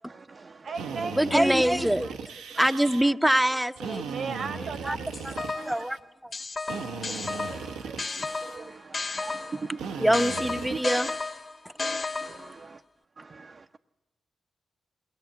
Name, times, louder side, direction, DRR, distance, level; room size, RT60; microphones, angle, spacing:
voice 1, 0.1-0.7 5.6-5.7 7.0-10.0 10.7-11.0 11.8-12.8 13.2-13.8, right 4 dB, 50° right, 0.7 m, -42 dB
voice 2, 0.6-1.5 2.0-2.1 2.7-3.2 3.5-3.6 4.0-6.0, right 5 dB, 70° right, 1.2 m, -38 dB
Drill, 0.7-3.0 3.8-6.0 6.7-8.6 9.8-11.1, right 5 dB, 90° right, 0.9 m, -38 dB
voice 3, 1.2-2.1 2.6-4.1 4.8-5.0 5.7-6.0 10.0-11.1, right 1 dB, 5° right, 0.8 m, -23 dB
sound 1, 5.1-5.8 6.3-9.7 10.1-12.6, left 3 dB, 50° left, 1.6 m, -33 dB
22.0 x 18.0 x 8.0 m
supercardioid pair, 45°, 0 cm